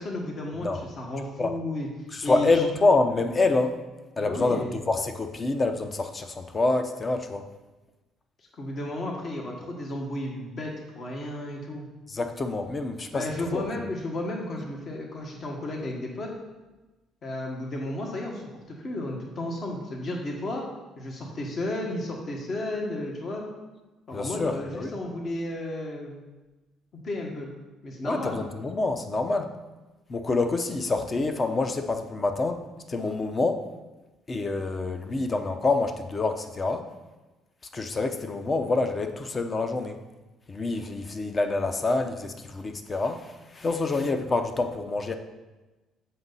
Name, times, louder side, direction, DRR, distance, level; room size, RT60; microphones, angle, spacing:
voice 1, 0.0-1.9 2.2-2.6 4.2-4.8 8.6-11.9 13.1-16.3 17.2-20.6 21.0-23.4 24.1-26.2 27.0-27.5 27.8-28.4, left 1 dB, 45° left, 0 dB, 1.5 m, -33 dB
voice 2, 2.1-3.8 4.2-7.5 12.1-13.2 13.5-13.6 24.1-25.0 28.0-29.5 30.1-32.6 32.9-33.6 34.3-36.8 37.7-40.0 40.5-45.1, left 3 dB, 30° left, 7 dB, 0.7 m, -26 dB
7.6 x 5.5 x 4.1 m, 1.1 s
supercardioid pair, 85°, 0 cm